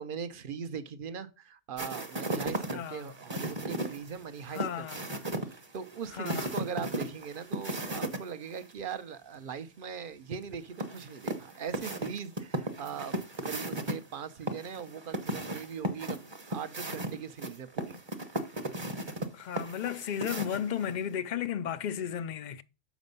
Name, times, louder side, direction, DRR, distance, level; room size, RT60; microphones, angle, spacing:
voice 1, 0.0-5.1 5.7-18.0, right 7 dB, 55° right, 0.8 m, -40 dB
sound 1, 1.8-8.2 8.5-8.6 10.8-13.9 14.5-20.9, right 1 dB, 25° right, 0.9 m, -35 dB
voice 2, 2.7-3.1 4.5-5.0 6.1-6.5 19.3-22.6, left 9 dB, 60° left, 0.5 m, -34 dB
7.2 x 5.2 x 5.3 m
omnidirectional pair, 1.2 m